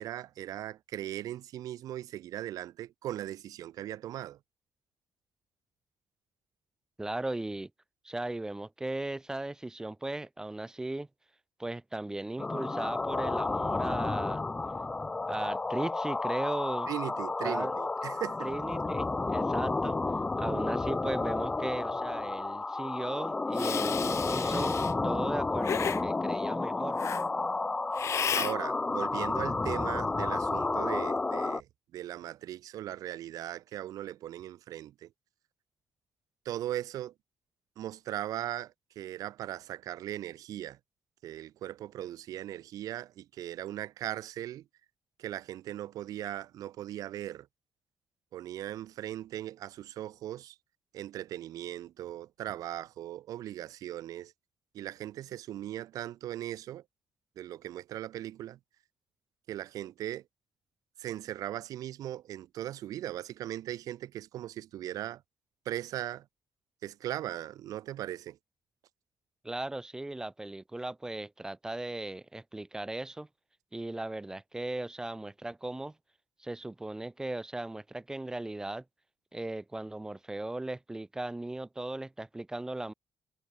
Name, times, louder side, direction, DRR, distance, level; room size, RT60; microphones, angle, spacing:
voice 1, 0.0-4.4 16.9-18.5 28.3-31.7 31.9-35.1 36.4-37.1 37.8-40.8 41.2-44.6 45.2-47.5 48.3-50.5 50.9-54.3 54.7-56.8 57.4-58.6 59.5-60.2 61.0-65.2 65.6-66.2 66.8-68.4, right 12 dB, 80° right, 1.2 m, -38 dB
voice 2, 7.0-7.7 8.0-11.1 11.6-14.4 15.3-16.9 17.4-17.7 18.4-20.0 20.4-24.8 25.0-27.0 69.4-73.3 73.7-75.9 76.4-78.8 79.3-82.9, right 2 dB, 10° right, 0.9 m, -37 dB
sound 1, 12.4-31.6, left 3 dB, 15° left, 0.4 m, -31 dB
Hiss, 23.5-24.9 25.6-26.0 27.0-27.2 28.0-28.5, left 8 dB, 50° left, 2.1 m, -33 dB
cardioid pair, 140°, 6 cm